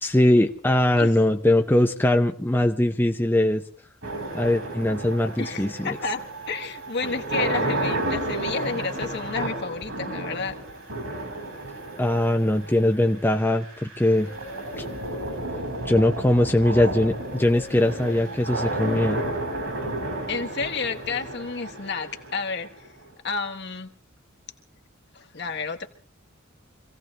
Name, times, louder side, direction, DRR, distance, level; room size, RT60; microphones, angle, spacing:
voice 1, 0.0-3.6 4.3-6.0 12.0-14.3 14.8-14.9 15.9-19.2, left 1 dB, 10° left, 4 dB, 0.6 m, -21 dB
sound 1, 4.0-23.1, right 1 dB, 75° right, 5.7 m, -32 dB
voice 2, 5.4-10.6 20.3-22.9 23.2-23.9 25.1-25.9, left 4 dB, 55° left, 4 dB, 1.4 m, -31 dB
25.5 x 16.5 x 3.3 m, 0.43 s
head